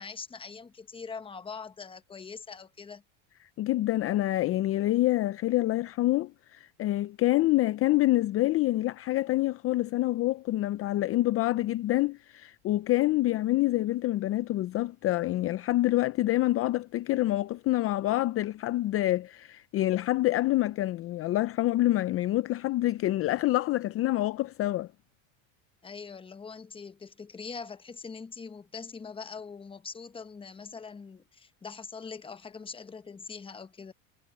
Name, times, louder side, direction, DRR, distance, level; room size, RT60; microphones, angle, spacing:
voice 1, 0.0-3.0 25.8-33.9, left 5 dB, 15° left, 1.0 m, -42 dB
voice 2, 3.6-24.9, left 16 dB, 35° left, 0.6 m, -27 dB
supercardioid pair, 120°, 40 cm